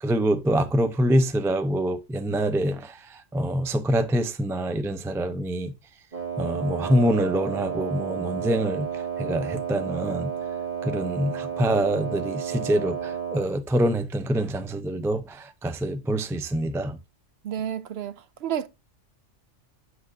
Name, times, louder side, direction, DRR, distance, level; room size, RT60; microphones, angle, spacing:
voice 1, 0.0-5.7 6.4-10.3 10.8-17.0, right 1 dB, 5° right, 0.3 m, -25 dB
Wind instrument woodwind instrument, 6.1-13.5, right 8 dB, 30° right, 1.6 m, -32 dB
voice 2, 17.4-18.7, right 9 dB, 65° right, 0.8 m, -31 dB
7.9 x 6.4 x 2.7 m
omnidirectional pair, 1.2 m